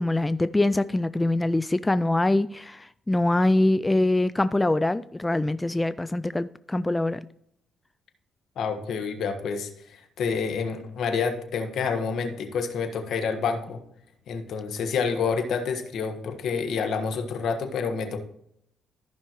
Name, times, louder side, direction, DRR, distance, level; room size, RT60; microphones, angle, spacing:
voice 1, 0.0-7.2, left 2 dB, 15° left, 0.3 m, -24 dB
voice 2, 8.6-13.8 14.3-18.2, left 5 dB, 70° left, 1.4 m, -28 dB
14.0 x 5.7 x 3.1 m
cardioid pair, 90°, 0 cm